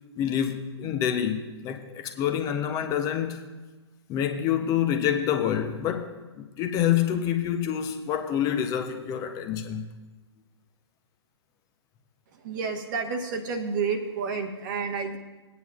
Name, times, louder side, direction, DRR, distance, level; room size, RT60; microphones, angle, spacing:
voice 1, 0.2-3.4 4.1-9.9, left 9 dB, 25° left, 0.6 m, -27 dB
voice 2, 12.4-15.2, right 5 dB, 45° right, 1.1 m, -30 dB
17.0 x 9.5 x 2.4 m
figure-of-eight pair, 120°, 15 cm